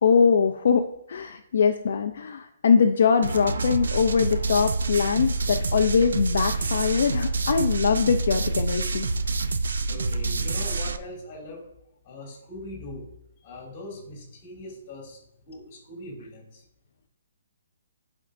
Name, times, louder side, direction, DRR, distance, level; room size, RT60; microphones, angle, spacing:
voice 1, 0.0-9.1, left 6 dB, 50° left, 4 dB, 0.4 m, -22 dB
sound 1, 3.2-11.0, right 3 dB, 85° right, 0.5 m, -27 dB
voice 2, 9.9-11.6 12.0-13.0 13.4-15.2 15.5-16.6, left 2 dB, 20° left, -2 dB, 2.3 m, -40 dB
11.0 x 4.4 x 2.6 m, 0.85 s
hypercardioid pair, 180°, 0 cm